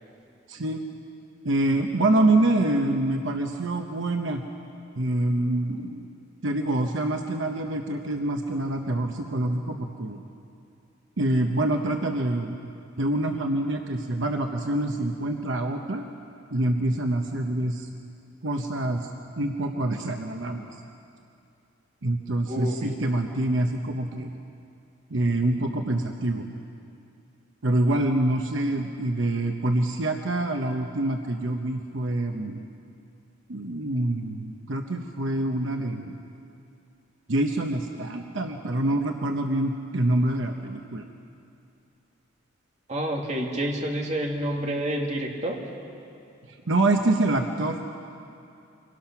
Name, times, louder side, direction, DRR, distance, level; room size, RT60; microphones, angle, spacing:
voice 1, 0.5-0.8 1.4-4.4 5.0-6.1 6.4-10.2 11.2-12.6 13.0-16.0 16.5-17.9 18.4-19.1 19.4-20.7 22.0-24.3 25.1-26.5 27.6-32.6 33.5-36.2 37.3-41.0 46.7-47.8, right 1 dB, 75° right, 4 dB, 1.0 m, -26 dB
voice 2, 22.5-23.0 42.9-45.6, right 1 dB, 35° right, 0 dB, 2.2 m, -28 dB
25.0 x 18.0 x 5.9 m, 2.6 s
head